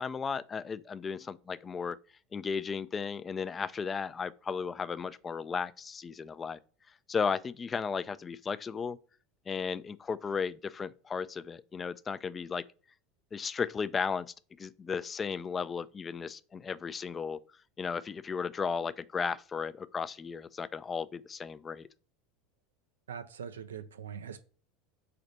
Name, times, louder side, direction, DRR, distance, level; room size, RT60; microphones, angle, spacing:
voice 1, 0.0-2.0 2.3-6.6 7.1-9.0 9.5-12.6 13.3-17.4 17.8-21.9, left 5 dB, 25° left, 0.3 m, -35 dB
voice 2, 23.1-24.4, right 7 dB, 85° right, 0.3 m, -42 dB
4.0 x 3.3 x 3.9 m
hypercardioid pair, 85°, 0 cm